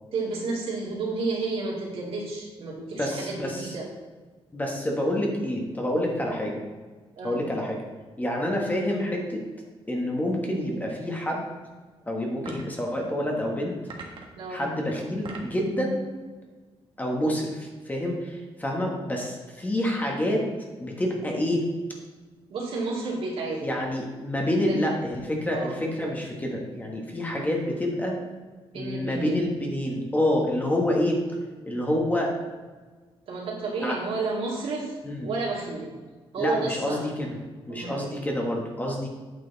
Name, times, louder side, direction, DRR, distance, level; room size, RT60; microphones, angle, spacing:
voice 1, 0.1-3.9 7.2-7.5 14.4-14.7 22.5-23.7 24.7-24.8 25.5-25.8 28.7-29.4 33.3-34.9 35.2-35.9 36.3-37.0 37.7-38.1, right 3 dB, 70° right, -3 dB, 2.6 m, -31 dB
voice 2, 3.0-3.8 4.5-6.6 7.2-7.8 8.2-9.4 9.9-11.5 12.1-13.7 14.5-16.0 17.0-20.5 20.8-21.7 23.6-28.1 28.7-31.2 31.6-32.3 33.8-34.0 35.0-35.3 36.4-37.3 37.7-39.1, left 1 dB, 15° left, 0 dB, 1.5 m, -27 dB
sound 1, 12.4-12.8 13.9-14.4 15.0-15.6, right 3 dB, 55° right, 1.5 m, -41 dB
8.9 x 6.8 x 4.1 m, 1.4 s
wide cardioid pair, 135°, 10 cm